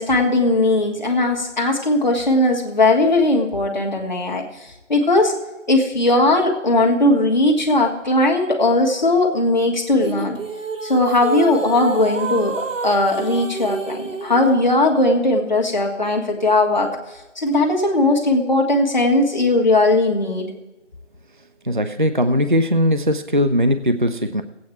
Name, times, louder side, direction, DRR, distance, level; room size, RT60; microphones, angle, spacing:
voice 1, 0.0-5.3 5.7-10.4 10.8-16.9 17.3-20.5, left 2 dB, 35° left, 0 dB, 1.6 m, -18 dB
sound 1, 10.0-14.5, right 3 dB, 85° right, 1.5 m, -29 dB
voice 2, 21.7-24.4, equal, 40° right, 9 dB, 0.4 m, -19 dB
16.5 x 8.6 x 4.4 m, 1.0 s
figure-of-eight pair, 175°, 38 cm